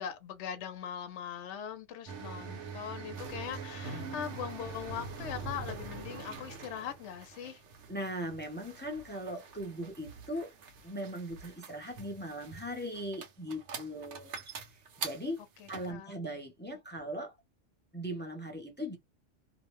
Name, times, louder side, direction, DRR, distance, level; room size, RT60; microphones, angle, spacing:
voice 1, 0.0-7.6 15.6-16.1, left 8 dB, 75° left, 0.9 m, -41 dB
sound 1, 2.1-15.9, right 4 dB, 75° right, 1.0 m, -44 dB
voice 2, 7.9-10.5 10.8-14.4 14.7-15.4 15.7-17.3 17.9-19.0, equal, 15° left, 0.4 m, -39 dB
2.6 x 2.1 x 2.9 m
omnidirectional pair, 1.2 m